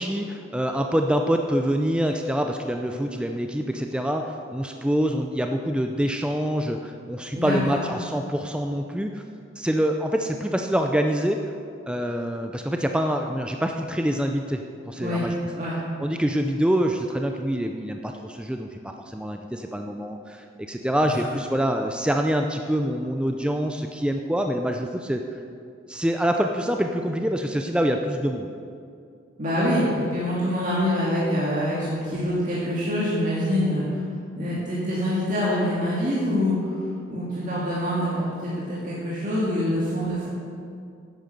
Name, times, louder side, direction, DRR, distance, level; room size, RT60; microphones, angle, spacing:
voice 1, 0.0-9.2 9.6-11.5 11.9-14.6 14.9-15.3 16.0-25.2 25.9-28.5, equal, 5° right, 4 dB, 0.4 m, -25 dB
voice 2, 7.3-7.8 15.0-15.2 15.6-15.8 21.0-21.2 29.4-34.0 34.4-36.5 37.1-40.3, equal, 40° right, -8 dB, 2.1 m, -25 dB
9.8 x 9.0 x 6.5 m, 2.4 s
head